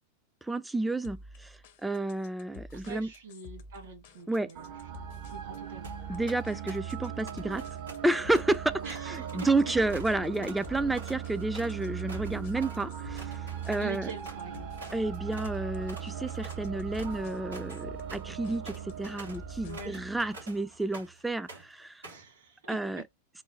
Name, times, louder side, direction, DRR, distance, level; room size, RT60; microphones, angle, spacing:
voice 1, 0.4-3.1 4.3-4.5 6.1-7.6 8.0-14.1 14.9-22.0 22.7-23.0, right 2 dB, 5° right, 0.3 m, -31 dB
sound 1, 1.0-20.1, left 2 dB, 50° left, 0.6 m, -50 dB
voice 2, 2.7-4.7 5.3-5.9 8.8-9.7 13.8-14.7 19.6-19.9 22.1-23.0, right 5 dB, 60° right, 1.8 m, -44 dB
sound 2, 4.5-20.8, right 9 dB, 45° right, 0.6 m, -39 dB
sound 3, 5.8-6.0 6.3-7.0 7.3-15.0 15.3-15.6 15.9-21.2 21.5-22.3, right 2 dB, 75° right, 2.2 m, -48 dB
3.8 x 2.1 x 3.0 m
figure-of-eight pair, 90°, 0 cm